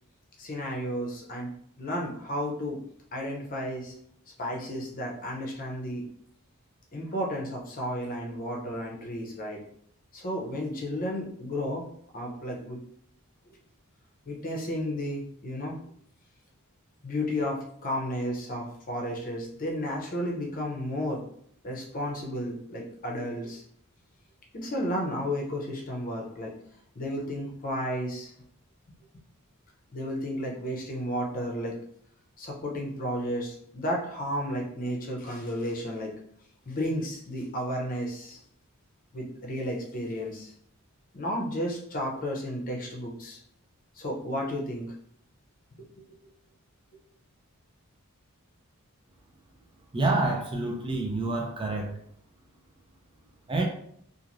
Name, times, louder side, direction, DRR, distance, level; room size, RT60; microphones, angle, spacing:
voice 1, 0.4-1.5 1.8-2.8 3.1-3.9 4.4-6.1 6.9-9.6 10.1-11.8 12.1-12.8 14.3-15.8 17.0-21.2 21.6-23.6 24.5-26.5 27.0-28.3 29.9-31.8 32.4-36.1 36.7-38.4 39.1-40.5 41.1-43.4 44.0-44.9 46.0-46.1, equal, 40° left, -1 dB, 0.7 m, -32 dB
voice 2, 49.9-51.9 53.5-53.7, right 2 dB, 25° right, 1 dB, 0.4 m, -27 dB
3.0 x 2.5 x 2.5 m, 0.68 s
head